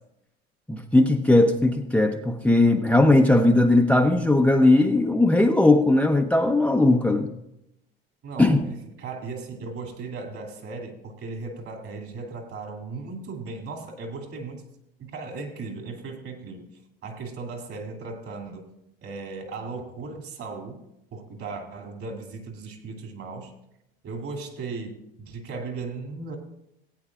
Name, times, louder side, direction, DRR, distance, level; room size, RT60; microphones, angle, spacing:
voice 1, 0.7-7.3 8.4-8.6, left 2 dB, 5° left, 4 dB, 0.7 m, -18 dB
voice 2, 8.2-14.6 15.0-16.7 17.0-18.7 19.0-20.8 21.1-23.5 24.0-26.4, right 4 dB, 50° right, 3 dB, 2.8 m, -37 dB
18.5 x 8.9 x 2.5 m, 0.83 s
hypercardioid pair, 75°, 29 cm